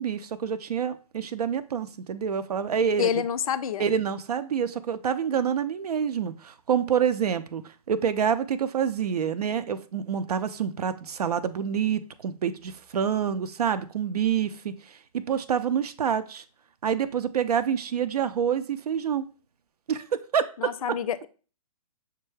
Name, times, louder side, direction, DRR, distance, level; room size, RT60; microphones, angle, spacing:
voice 1, 0.0-3.2 3.8-16.4 16.8-19.3 19.9-20.7, right 7 dB, 80° right, 0.4 m, -27 dB
voice 2, 3.0-3.8 20.6-21.3, left 8 dB, 65° left, 0.4 m, -27 dB
6.5 x 2.3 x 3.2 m
hypercardioid pair, 130°, 19 cm